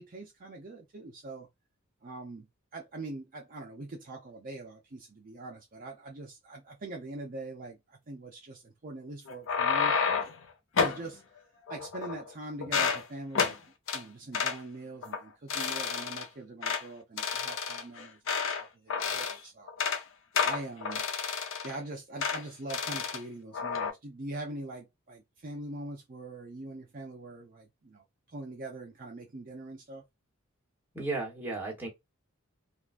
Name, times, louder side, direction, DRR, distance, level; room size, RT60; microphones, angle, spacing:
voice 1, 0.0-1.5 2.0-10.0 10.8-11.2 11.7-13.6 13.9-19.7 20.4-21.0 21.6-30.0, right 2 dB, 40° right, 0.5 m, -43 dB
sound 1, 9.3-10.4 10.8-11.0 11.7-12.3 12.6-13.0 13.3-13.6 13.9-14.0 14.3-14.6 15.0-15.2 15.5-16.2 16.6-16.8 17.2-18.6 18.9-19.4 19.7-20.0 20.3-21.8 22.2-22.4 22.7-23.2 23.5-23.9, left 5 dB, 60° left, 0.6 m, -30 dB
voice 2, 30.9-31.9, right 3 dB, 10° right, 1.1 m, -34 dB
3.6 x 2.3 x 2.4 m
head